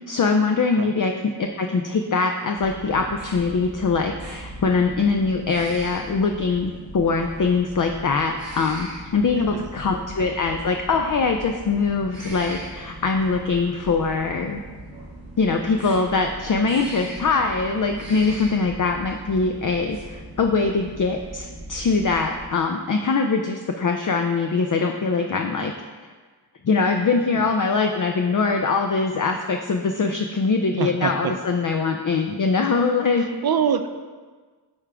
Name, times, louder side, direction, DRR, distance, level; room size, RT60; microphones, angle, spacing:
voice 1, 0.1-1.1 1.4-14.6 15.4-25.7 26.6-33.2, left 4 dB, 45° left, 4 dB, 0.5 m, -22 dB
sound 1, 2.6-22.5, right 1 dB, 80° right, 1.9 m, -39 dB
voice 2, 9.4-9.7 18.2-18.4 27.3-27.4 30.8-31.3 33.4-33.9, right 7 dB, 60° right, 9 dB, 0.5 m, -25 dB
9.6 x 3.6 x 3.4 m, 1.4 s
wide cardioid pair, 55°, 43 cm